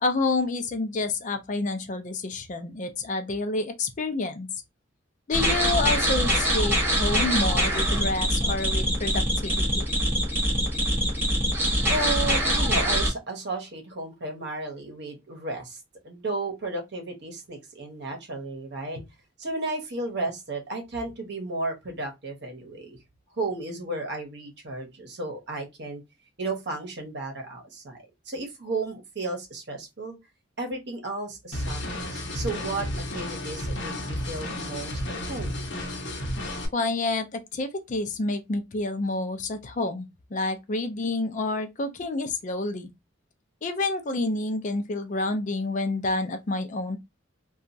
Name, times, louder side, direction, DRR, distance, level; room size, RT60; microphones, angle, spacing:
voice 1, 0.0-4.5 5.3-9.9 36.7-42.9 43.6-47.0, left 2 dB, 40° left, 0.4 m, -28 dB
sound 1, 5.3-13.1, equal, 10° right, 1.0 m, -24 dB
voice 2, 11.9-19.0 19.4-23.0 23.3-26.0 26.4-28.0 28.3-30.2 30.6-32.9 33.1-33.9 34.3-35.0 35.3-35.6, right 2 dB, 60° right, 1.0 m, -33 dB
sound 2, 31.5-36.7, left 1 dB, 65° left, 0.8 m, -32 dB
2.9 x 2.3 x 2.6 m
head